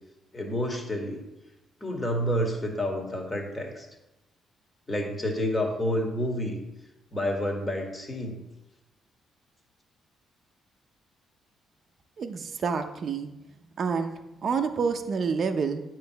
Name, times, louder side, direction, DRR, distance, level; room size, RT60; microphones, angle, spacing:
voice 1, 0.3-1.2 1.8-3.9 4.9-6.6 7.1-8.4, equal, 20° left, 1 dB, 1.7 m, -29 dB
voice 2, 12.2-13.3 13.8-15.8, right 5 dB, 50° right, 6 dB, 0.6 m, -28 dB
8.8 x 3.1 x 5.7 m, 0.95 s
cardioid pair, 90°, 0 cm